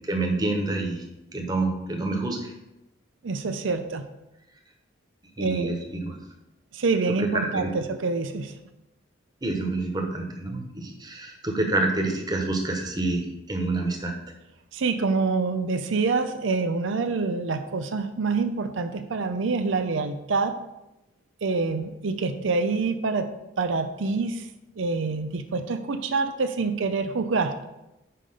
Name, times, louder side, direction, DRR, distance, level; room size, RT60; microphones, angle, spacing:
voice 1, 0.0-1.0 1.3-2.5 5.4-6.2 7.2-7.7 9.4-14.1, right 2 dB, 20° right, 2 dB, 1.1 m, -27 dB
voice 2, 3.2-4.0 5.4-5.7 6.7-8.5 14.7-20.5 21.4-23.3 23.6-24.4 24.8-27.6, right 4 dB, 85° right, 8 dB, 0.6 m, -26 dB
5.8 x 5.1 x 6.6 m, 0.95 s
head